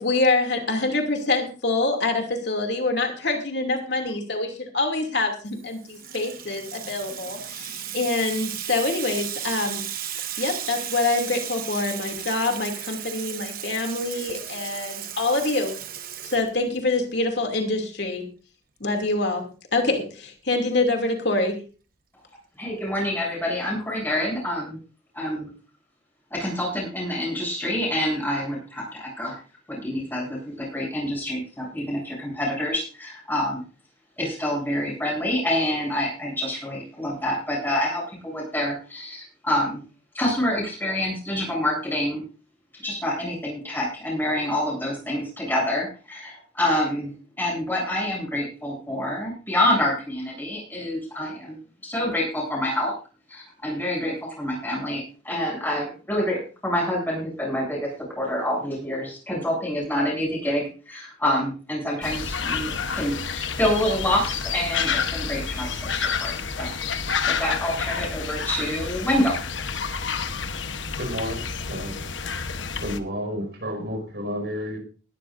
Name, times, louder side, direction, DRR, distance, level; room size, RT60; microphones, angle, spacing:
voice 1, 0.0-9.8 10.4-15.8 16.2-18.2 18.8-19.4 19.7-21.6, left 2 dB, 65° left, 2.7 m, -25 dB
Water tap faucet / Sink (filling or washing), 5.6-17.0, right 10 dB, 50° right, 1.2 m, -35 dB
voice 2, 22.6-24.8 25.1-25.5 26.3-29.4 29.7-33.6 34.2-39.8 40.1-42.2 42.8-47.1 47.4-51.6 51.8-52.9 53.3-66.7 67.3-69.4, left 1 dB, 10° left, 7.9 m, -27 dB
sound 1, 62.0-73.0, left 6 dB, 90° left, 1.1 m, -29 dB
voice 3, 71.0-72.1 72.8-74.8, equal, 65° right, 5.6 m, -31 dB
20.0 x 13.0 x 2.6 m
head